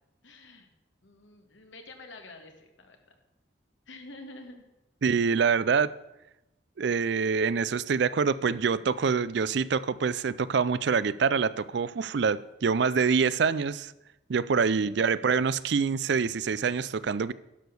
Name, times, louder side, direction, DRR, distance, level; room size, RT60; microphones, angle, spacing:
voice 1, 0.2-0.7 1.0-3.1 3.9-4.6 14.4-15.1, left 2 dB, 85° left, 5 dB, 1.7 m, -48 dB
voice 2, 5.0-5.9 6.8-13.9 14.3-17.3, right 5 dB, 65° right, 17 dB, 0.4 m, -25 dB
11.5 x 6.2 x 6.8 m, 0.91 s
head